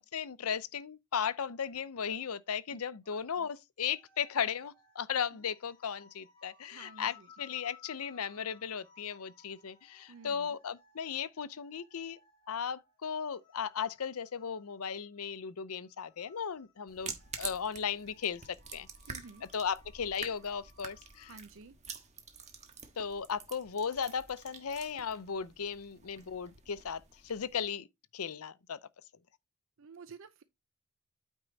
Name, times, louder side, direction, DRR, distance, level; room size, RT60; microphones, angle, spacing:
voice 1, 0.0-12.2 12.5-18.9 19.5-21.3 23.0-27.9 28.1-28.8, left 7 dB, 75° left, 0.6 m, -36 dB
voice 2, 3.1-3.5 5.3-5.4 6.7-7.3 10.1-10.6 19.1-19.5 21.2-21.8 29.8-30.4, right 4 dB, 60° right, 0.5 m, -52 dB
sound 1, 3.9-21.4, left 5 dB, 25° left, 3.3 m, -63 dB
sound 2, 16.9-27.6, right 6 dB, 30° right, 1.4 m, -48 dB
9.1 x 4.5 x 4.0 m
head